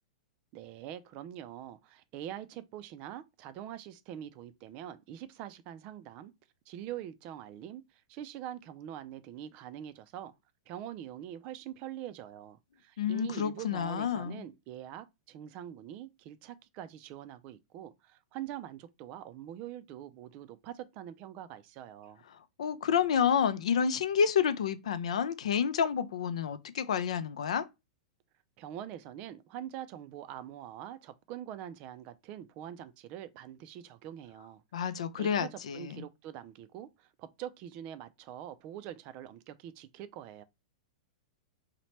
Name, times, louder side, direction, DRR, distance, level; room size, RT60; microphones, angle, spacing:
voice 1, 0.5-6.3 6.7-10.3 10.7-22.2 28.6-34.6 35.1-40.4, right 11 dB, 40° right, 0.3 m, -44 dB
voice 2, 13.0-14.4 22.6-27.7 34.7-36.0, left 7 dB, 80° left, 0.4 m, -29 dB
2.8 x 2.1 x 3.1 m
hypercardioid pair, 135°, 3 cm